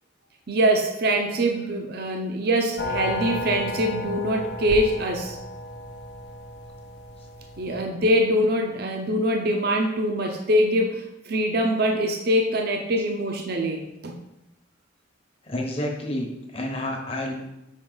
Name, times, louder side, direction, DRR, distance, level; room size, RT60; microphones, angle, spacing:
voice 1, 0.5-5.4 7.6-14.2, equal, 55° right, 3 dB, 0.6 m, -23 dB
sound 1, 2.8-7.8, left 2 dB, 60° left, 0.7 m, -33 dB
voice 2, 15.5-17.3, left 1 dB, 30° left, 1 dB, 1.0 m, -30 dB
5.6 x 5.3 x 4.0 m, 0.89 s
head